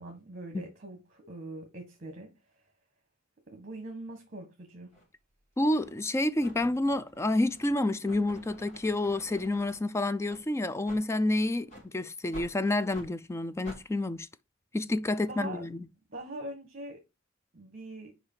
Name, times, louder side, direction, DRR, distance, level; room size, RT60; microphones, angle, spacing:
voice 1, 0.0-2.3 3.5-4.9 15.3-15.6 16.1-17.0 17.5-18.1, right 1 dB, 45° right, 1.5 m, -42 dB
sound 1, 4.9-5.1 5.7-6.0 6.4-9.8 10.2-10.4 10.8-11.0 11.7-11.9 12.3-12.5 12.9-13.1 13.6-13.8, equal, 35° left, 3.5 m, -49 dB
voice 2, 5.6-14.3 14.7-15.8, left 2 dB, 15° left, 0.3 m, -29 dB
5.0 x 4.9 x 5.6 m
head